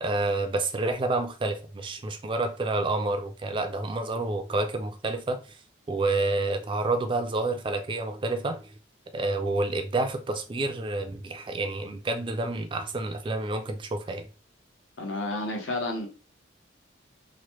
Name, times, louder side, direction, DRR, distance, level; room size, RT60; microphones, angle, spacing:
voice 1, 0.0-5.4 5.9-8.6 9.1-14.3, right 2 dB, 25° right, 0.3 m, -29 dB
voice 2, 15.0-16.1, left 2 dB, 85° left, 0.9 m, -30 dB
3.0 x 2.1 x 3.0 m
head